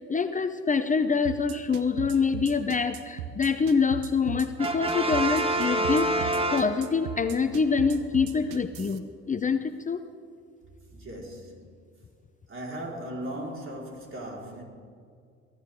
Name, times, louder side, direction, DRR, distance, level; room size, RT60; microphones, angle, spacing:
voice 1, 0.1-10.0, left 5 dB, 25° left, 9 dB, 0.8 m, -26 dB
sound 1, 1.2-9.0, right 10 dB, 85° right, 1.0 m, -37 dB
Brass instrument, 4.6-7.2, right 1 dB, 20° right, 1.5 m, -27 dB
voice 2, 10.9-11.6 12.5-14.6, right 1 dB, 40° right, -1 dB, 4.7 m, -37 dB
23.0 x 13.5 x 3.8 m, 2.2 s
hypercardioid pair, 65°, 31 cm